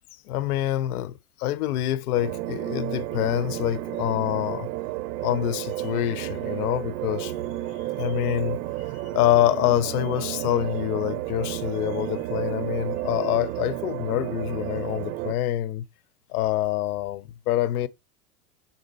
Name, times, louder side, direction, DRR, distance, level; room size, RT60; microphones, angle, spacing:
voice 1, 0.3-4.7 5.2-7.3 8.0-8.6 9.1-15.8 16.3-17.9, left 13 dB, 75° left, 0.9 m, -26 dB
sound 1, 2.1-15.3, right 15 dB, 60° right, 0.9 m, -32 dB
6.9 x 4.2 x 4.3 m
hypercardioid pair, 105°, 45 cm